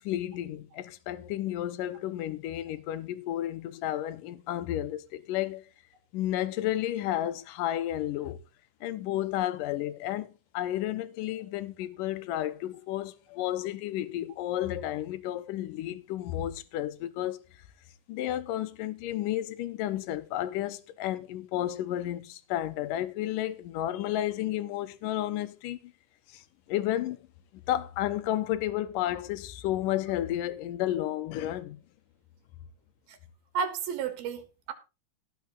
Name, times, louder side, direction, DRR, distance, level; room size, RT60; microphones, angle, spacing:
voice 1, 0.0-5.7 6.1-8.4 8.8-10.3 10.5-17.4 18.1-25.9 26.3-26.4 26.7-27.2 27.7-31.8, left 13 dB, 75° left, 2.3 m, -32 dB
voice 2, 33.6-34.7, right 6 dB, 75° right, 3.6 m, -32 dB
17.0 x 5.8 x 5.2 m
omnidirectional pair, 4.4 m